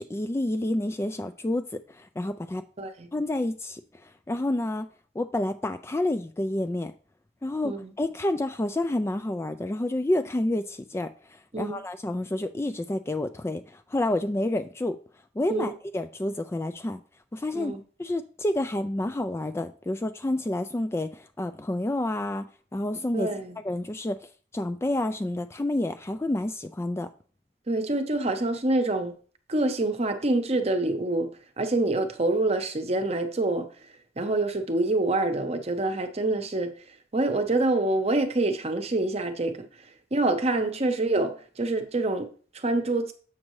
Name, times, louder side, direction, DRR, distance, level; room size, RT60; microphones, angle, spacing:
voice 1, 0.0-2.6 3.1-4.9 5.2-6.9 7.4-15.0 15.4-17.0 17.3-17.7 18.0-22.4 22.7-23.3 23.6-27.1, left 1 dB, 15° left, 0.3 m, -29 dB
voice 2, 2.8-3.1 7.6-7.9 11.5-11.8 15.5-15.7 17.5-17.8 23.1-23.6 27.7-29.2 29.5-31.3 31.6-33.7 34.2-36.7 37.1-39.7 40.1-43.1, right 2 dB, 35° right, 0.8 m, -26 dB
7.3 x 6.4 x 3.1 m
head